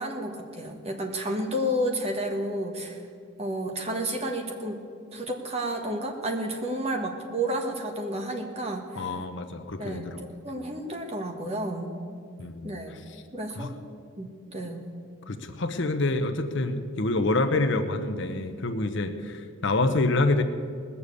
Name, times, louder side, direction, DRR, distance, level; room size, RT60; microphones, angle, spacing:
voice 1, 0.0-3.0 3.4-4.8 5.1-9.2 9.8-10.1 10.4-12.0 12.6-13.0 13.3-13.7 14.2-14.8, right 1 dB, 30° right, 3 dB, 1.5 m, -31 dB
voice 2, 9.0-10.2 12.4-13.2 13.6-13.7 15.3-20.4, left 2 dB, 55° left, 8 dB, 0.9 m, -27 dB
19.5 x 7.1 x 8.3 m, 2.3 s
head